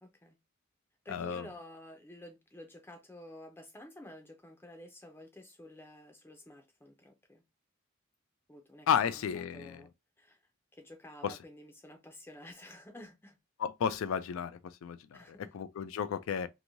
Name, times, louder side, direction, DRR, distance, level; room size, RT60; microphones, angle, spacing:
voice 1, 0.0-0.4 1.0-7.4 8.5-8.9 9.1-9.9 10.2-10.4 10.7-13.4 15.1-15.5, left 1 dB, 10° left, 0.5 m, -51 dB
voice 2, 1.1-1.5 8.9-9.8 11.2-11.4 13.6-15.2 15.5-16.5, left 7 dB, 70° left, 0.3 m, -32 dB
3.0 x 2.6 x 2.5 m
head